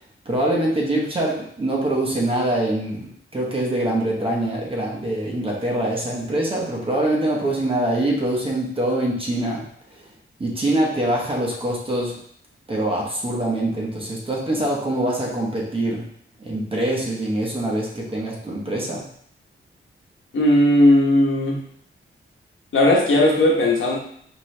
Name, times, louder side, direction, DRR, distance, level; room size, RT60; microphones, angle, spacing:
voice 1, 0.2-9.6 10.4-12.1 12.7-16.0 16.4-19.0, right 1 dB, 25° right, -3 dB, 0.9 m, -24 dB
voice 2, 20.3-21.6 22.7-24.0, left 1 dB, 70° left, -2 dB, 1.0 m, -17 dB
4.5 x 3.0 x 3.2 m, 0.64 s
wide cardioid pair, 180°, 21 cm